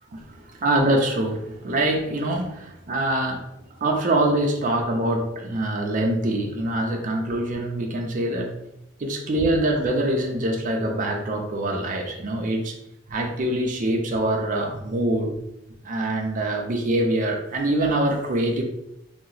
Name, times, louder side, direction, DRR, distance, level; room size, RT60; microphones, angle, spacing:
voice 1, 0.1-3.5 3.8-8.6 9.0-12.8 13.1-15.4 15.8-18.6, right 1 dB, 40° right, 0.4 m, -24 dB
2.8 x 2.0 x 3.8 m
head